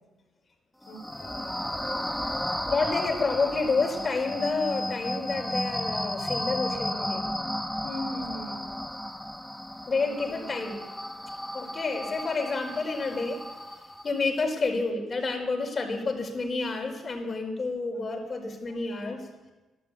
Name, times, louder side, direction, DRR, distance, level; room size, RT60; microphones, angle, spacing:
voice 1, 0.8-2.7 7.8-8.8 10.0-10.6, left 1 dB, 85° left, -2 dB, 3.3 m, -42 dB
sound 1, 0.8-14.2, equal, 5° left, 1.2 m, -34 dB
voice 2, 2.7-7.2 9.9-10.8 11.5-13.4 14.0-19.3, left 3 dB, 40° left, 0 dB, 5.0 m, -29 dB
12.0 x 12.0 x 8.7 m, 1.1 s
supercardioid pair, 60°, 0 cm